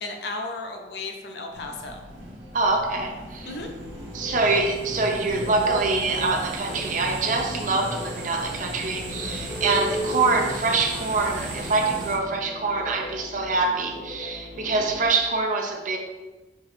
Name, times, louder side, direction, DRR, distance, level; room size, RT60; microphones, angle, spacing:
voice 1, 0.0-2.0 3.5-3.7, left 3 dB, 60° left, 3 dB, 0.6 m, -34 dB
sound 1, 1.5-12.2, right 1 dB, 85° right, 0.9 m, -37 dB
voice 2, 2.5-3.6 4.1-16.0, right 3 dB, 45° right, 2 dB, 0.5 m, -25 dB
sound 2, 3.3-15.1, equal, 5° left, 0.8 m, -37 dB
4.6 x 2.9 x 3.3 m, 1.2 s
head